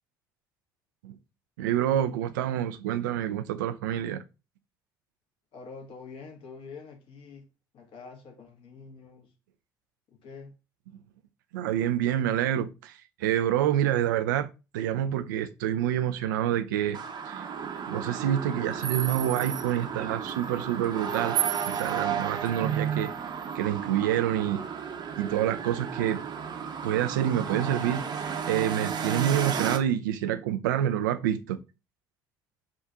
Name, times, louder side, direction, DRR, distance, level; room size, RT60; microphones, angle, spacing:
voice 1, 1.6-4.2 11.5-12.9 13.2-14.5 14.7-17.0 17.3-17.4 17.9-21.4 21.7-23.1 23.5-24.6 25.2-26.2 26.8-28.0 28.5-31.6, right 11 dB, 80° right, 0.4 m, -27 dB
voice 2, 5.5-7.4 7.7-9.3 10.1-10.5, left 4 dB, 60° left, 1.5 m, -46 dB
sound 1, 16.9-29.8, right 7 dB, 45° right, 0.8 m, -33 dB
3.6 x 2.6 x 4.5 m
hypercardioid pair, 55°, 10 cm